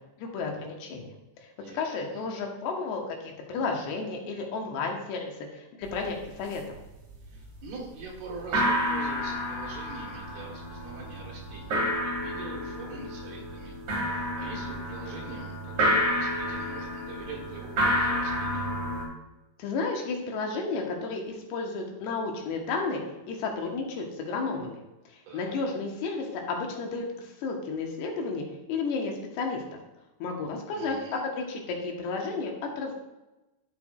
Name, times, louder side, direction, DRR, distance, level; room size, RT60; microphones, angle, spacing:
voice 1, 0.2-1.1 1.7-6.6 19.6-23.0 23.3-24.8 25.3-29.6 30.2-31.0 31.3-32.5 32.8-32.9, left 4 dB, 80° left, 1 dB, 3.2 m, -32 dB
voice 2, 1.6-2.2 7.3-11.7 12.0-13.8 14.1-18.8 25.3-25.6 30.7-31.2, right 3 dB, 70° right, -1 dB, 3.3 m, -44 dB
sound 1, 5.8-6.0 6.2-6.8 7.1-7.7 8.0-8.1 8.4-19.0, equal, 45° right, 3.0 m, -30 dB
11.5 x 6.8 x 2.4 m, 1.0 s
omnidirectional pair, 4.8 m